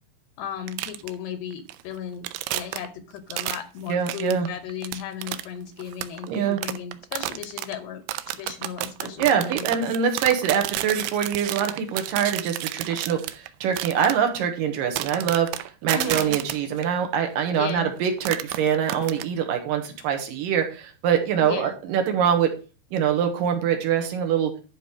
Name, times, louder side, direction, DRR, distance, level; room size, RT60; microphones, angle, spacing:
voice 1, 0.4-9.7 15.9-16.4 17.6-17.9 21.4-21.8, left 8 dB, 75° left, 10 dB, 2.7 m, -35 dB
sound 1, 0.7-1.2 1.5-1.9 2.3-2.9 3.3-3.6 3.9-5.5 5.8-7.7 8.1-14.2 15.0-16.9 17.5-17.8 18.1-19.2, right 15 dB, 85° right, 3.0 m, -31 dB
voice 2, 3.9-4.5 6.3-6.6 9.2-22.5 22.9-24.5, right 8 dB, 65° right, 5 dB, 2.3 m, -24 dB
11.5 x 5.0 x 6.1 m, 0.35 s
omnidirectional pair, 5.4 m